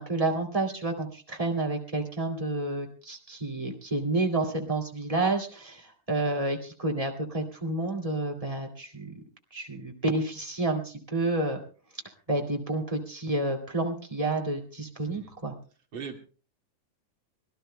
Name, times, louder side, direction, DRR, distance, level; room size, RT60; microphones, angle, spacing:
voice 1, 0.0-9.1 9.5-11.6 12.3-15.5, right 2 dB, 15° right, 1 dB, 1.8 m, -30 dB
voice 2, 15.0-15.3 15.9-16.2, right 6 dB, 40° right, 1 dB, 2.6 m, -40 dB
25.0 x 18.0 x 2.2 m, 0.37 s
omnidirectional pair, 3.5 m